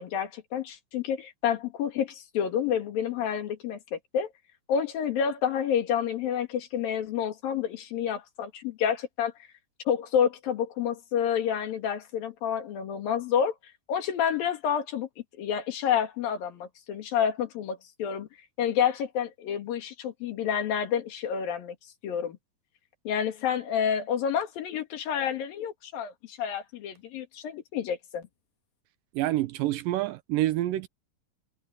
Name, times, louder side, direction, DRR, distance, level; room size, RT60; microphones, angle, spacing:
voice 1, 0.0-4.3 4.7-9.3 9.9-13.5 13.9-15.1 15.4-18.3 18.6-21.8 22.0-22.4 23.1-28.2, left 8 dB, 80° left, 3.8 m, -29 dB
voice 2, 29.1-30.9, right 15 dB, 80° right, 2.4 m, -27 dB
omnidirectional pair, 4.0 m